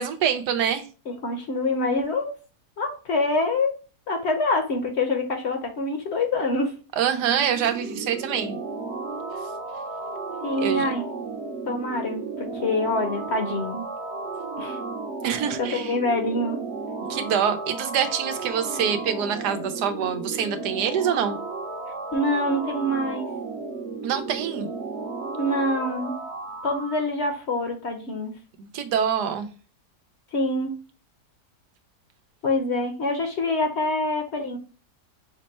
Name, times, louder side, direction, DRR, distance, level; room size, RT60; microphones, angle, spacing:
voice 1, 0.0-0.9 7.0-8.6 10.6-10.8 15.2-15.9 17.1-21.4 24.0-24.7 28.6-29.5, right 8 dB, 85° right, 1.3 m, -25 dB
voice 2, 1.1-2.4 2.8-3.7 4.1-6.8 10.4-11.1 11.7-13.9 14.6-14.8 15.6-16.6 22.1-23.3 25.4-26.2 26.6-28.3 30.3-30.8 32.4-34.6, left 2 dB, 50° left, 0.9 m, -25 dB
sound 1, 7.1-27.0, right 3 dB, 55° right, 1.0 m, -34 dB
5.9 x 2.2 x 4.1 m
omnidirectional pair, 1.7 m